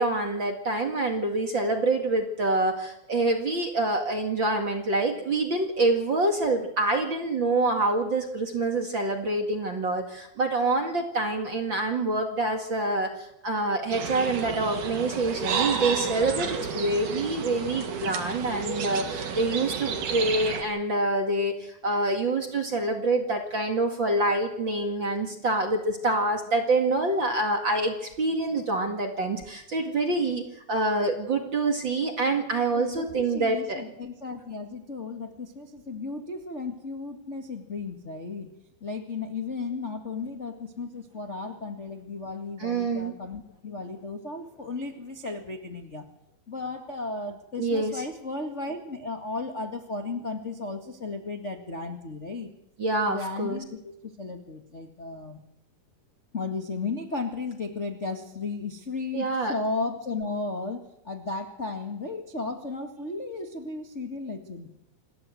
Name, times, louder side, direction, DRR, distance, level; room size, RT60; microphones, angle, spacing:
voice 1, 0.0-33.9 42.6-43.1 47.6-48.0 52.8-53.6 59.1-59.5, right 2 dB, 40° right, 4 dB, 2.2 m, -26 dB
sound 1, 13.9-20.6, right 6 dB, 60° right, 3.4 m, -31 dB
voice 2, 32.7-38.5 38.8-46.0 46.5-52.5 53.1-55.4 56.3-64.7, left 3 dB, 30° left, 3 dB, 1.4 m, -35 dB
27.0 x 15.0 x 7.8 m, 0.80 s
omnidirectional pair, 4.3 m